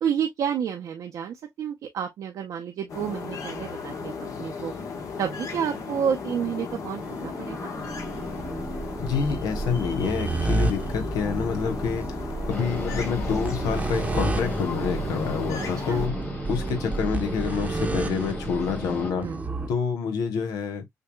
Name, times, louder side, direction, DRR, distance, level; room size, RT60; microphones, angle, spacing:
voice 1, 0.0-4.7 5.2-7.7 15.9-16.0 19.2-19.4, right 8 dB, 75° right, 0.7 m, -30 dB
sound 1, 2.9-16.1, left 5 dB, 65° left, 1.3 m, -36 dB
sound 2, 7.0-19.7, right 2 dB, 25° right, 0.8 m, -31 dB
voice 2, 9.0-12.1 12.5-16.1 16.5-19.3 19.7-20.9, left 6 dB, 90° left, 1.1 m, -27 dB
sound 3, 12.5-19.1, left 3 dB, 35° left, 2.1 m, -37 dB
6.6 x 2.3 x 2.3 m
cardioid pair, 90°, 6 cm